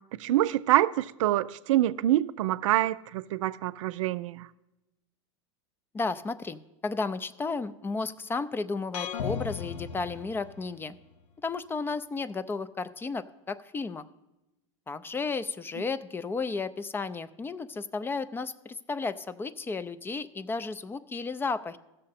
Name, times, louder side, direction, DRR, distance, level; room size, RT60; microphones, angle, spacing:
voice 1, 0.2-4.5, right 14 dB, 80° right, 0.4 m, -26 dB
voice 2, 5.9-10.9 11.4-14.0 14.9-21.8, left 4 dB, 15° left, 0.3 m, -33 dB
sound 1, 8.9-10.9, left 7 dB, 80° left, 0.7 m, -36 dB
15.5 x 6.6 x 4.1 m
supercardioid pair, 120°, 16 cm